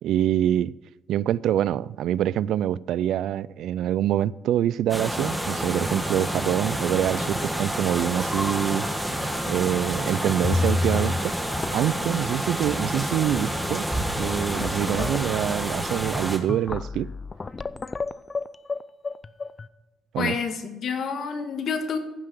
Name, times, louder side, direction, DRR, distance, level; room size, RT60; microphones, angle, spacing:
voice 1, 0.0-0.7 1.1-8.9 9.5-11.3 11.7-13.9 14.2-17.1 20.1-20.4, right 11 dB, 80° right, 0.3 m, -25 dB
sound 1, 4.9-16.4, equal, 5° right, 1.7 m, -28 dB
sound 2, 9.5-9.6 9.8-9.9 10.4-11.2 11.5-12.1 12.9-13.0 13.2-13.6 14.1-19.7, left 3 dB, 30° left, 0.5 m, -30 dB
voice 2, 20.2-22.0, left 6 dB, 65° left, 1.6 m, -28 dB
15.0 x 5.8 x 6.7 m
cardioid pair, 90°, 0 cm